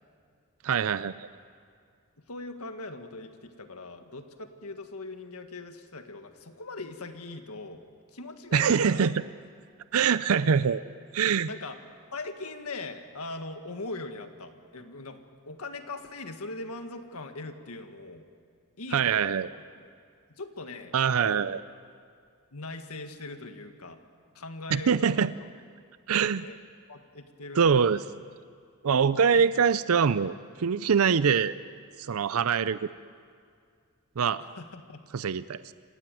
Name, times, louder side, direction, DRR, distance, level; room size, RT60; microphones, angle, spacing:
voice 1, 0.6-1.3 8.5-9.2 9.9-10.8 11.1-11.5 18.9-19.5 20.9-21.6 24.7-25.3 26.1-26.5 27.6-28.0 28.8-31.6 32.0-32.9 34.2-34.4 35.1-35.7, right 6 dB, 70° right, 15 dB, 0.5 m, -24 dB
voice 2, 2.2-7.8 8.1-9.1 11.5-18.2 18.8-19.9 20.3-21.5 22.5-24.0 24.3-25.3 26.4-26.6 26.9-28.1 29.3-29.5 34.4-35.0, left 3 dB, 75° left, 6 dB, 1.8 m, -41 dB
27.5 x 15.5 x 9.2 m, 2.2 s
head